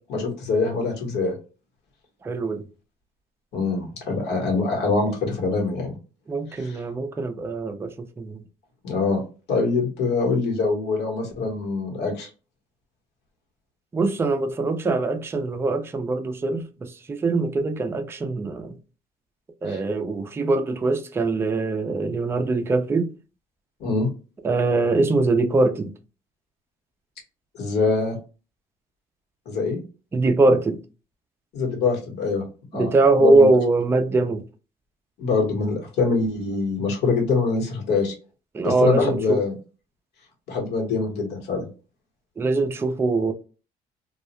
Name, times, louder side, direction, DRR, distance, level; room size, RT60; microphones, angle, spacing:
voice 1, 0.1-1.3 3.5-6.0 6.5-6.8 8.8-9.2 9.5-12.3 19.7-19.8 23.8-24.1 27.5-28.2 29.5-29.8 31.5-32.5 32.7-32.9 33.2-33.5 35.2-38.1 38.6-39.5 40.5-41.6, left 4 dB, 75° left, 1.1 m, -24 dB
voice 2, 2.2-2.6 6.3-8.4 13.9-18.8 19.6-23.1 24.4-25.9 30.1-30.8 32.7-34.4 38.5-39.4 42.4-43.3, right 2 dB, 15° right, 0.3 m, -22 dB
2.3 x 2.0 x 2.9 m
cardioid pair, 110°, 17 cm